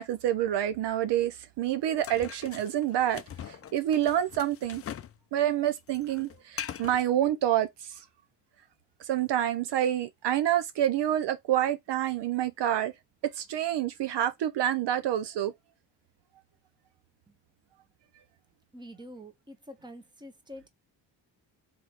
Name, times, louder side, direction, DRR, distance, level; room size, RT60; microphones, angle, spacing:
voice 1, 0.0-3.2 3.5-4.8 5.3-8.0 9.0-12.9 13.3-15.5, right 11 dB, 70° right, 0.7 m, -28 dB
sound 1, 2.0-5.2 5.4-7.0, left 9 dB, 35° left, 0.4 m, -41 dB
voice 2, 18.7-20.7, equal, 10° right, 1.1 m, -46 dB
3.6 x 3.0 x 4.3 m
cardioid pair, 100°, 43 cm